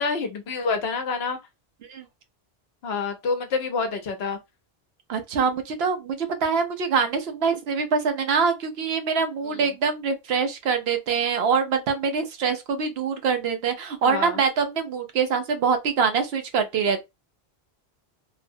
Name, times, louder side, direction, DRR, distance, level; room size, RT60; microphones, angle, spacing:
voice 1, 0.0-1.4 2.8-4.4 9.4-9.6 14.0-14.4, left 4 dB, 75° left, 0.9 m, -27 dB
voice 2, 5.1-17.0, right 5 dB, 80° right, 0.9 m, -24 dB
3.0 x 2.0 x 2.6 m
omnidirectional pair, 1.1 m